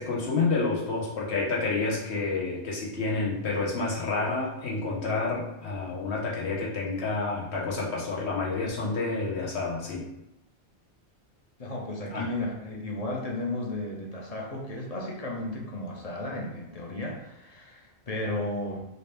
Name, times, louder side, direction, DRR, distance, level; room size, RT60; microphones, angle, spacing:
voice 1, 0.0-10.1 12.1-12.3, left 3 dB, 75° left, -4 dB, 1.3 m, -29 dB
voice 2, 11.6-18.8, left 2 dB, 40° left, -2 dB, 0.7 m, -34 dB
3.9 x 2.8 x 3.4 m, 0.88 s
omnidirectional pair, 1.1 m